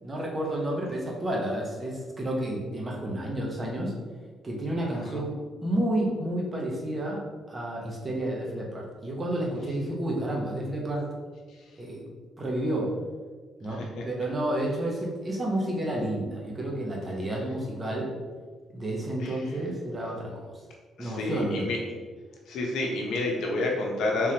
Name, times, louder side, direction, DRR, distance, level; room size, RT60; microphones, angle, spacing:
voice 1, 0.0-3.9 4.4-5.3 5.6-7.2 7.5-11.1 11.8-12.0 12.4-12.9 13.6-18.1 18.7-20.5 21.0-21.7, right 1 dB, 25° right, -2 dB, 0.9 m, -30 dB
voice 2, 4.8-5.2 11.5-11.8 13.7-14.0 19.2-19.6 21.0-21.8 22.5-24.3, left 2 dB, 80° left, -1 dB, 0.8 m, -30 dB
3.7 x 3.1 x 2.9 m, 1.5 s
cardioid pair, 90°, 0 cm